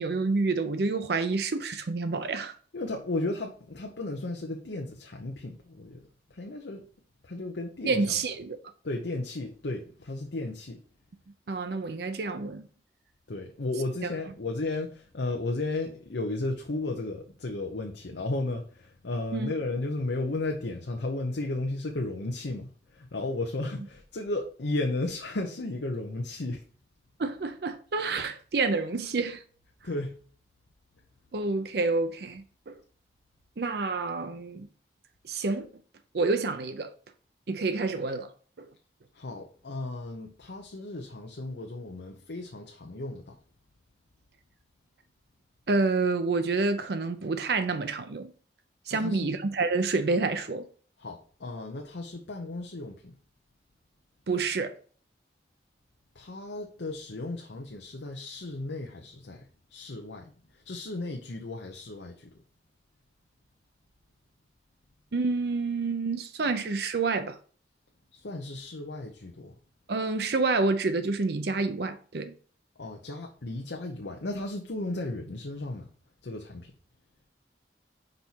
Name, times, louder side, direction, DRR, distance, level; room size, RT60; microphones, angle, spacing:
voice 1, 0.0-2.5 7.8-8.6 11.5-12.7 19.3-19.5 27.2-29.4 31.3-32.8 33.6-34.7 35.3-35.7 36.1-36.9 37.5-38.3 38.6-38.7 45.7-48.3 48.9-50.7 54.3-54.8 65.1-67.4 69.9-72.3, right 3 dB, 60° right, 0.5 m, -28 dB
voice 2, 2.7-6.8 7.2-8.1 8.8-10.8 13.3-26.6 29.8-30.2 39.1-43.4 48.9-49.3 51.0-53.1 56.1-62.3 68.1-69.6 72.8-75.9 76.2-76.7, left 2 dB, 75° left, 0.8 m, -34 dB
5.4 x 4.2 x 4.5 m
head